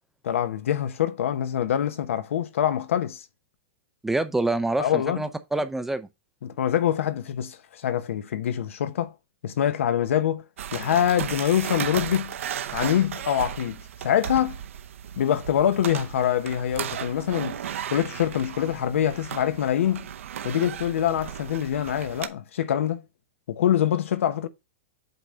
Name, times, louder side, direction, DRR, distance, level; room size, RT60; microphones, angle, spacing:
voice 1, 0.2-3.2 4.8-5.2 6.4-9.1 9.4-10.4 10.7-12.3 12.7-14.6 15.2-17.6 17.9-20.1 20.4-23.0 23.5-24.5, left 10 dB, 85° left, 0.9 m, -25 dB
voice 2, 4.0-6.1, right 2 dB, 5° right, 0.4 m, -26 dB
sound 1, 10.6-22.3, right 9 dB, 90° right, 0.7 m, -35 dB
8.0 x 3.6 x 4.0 m
supercardioid pair, 160°, 7 cm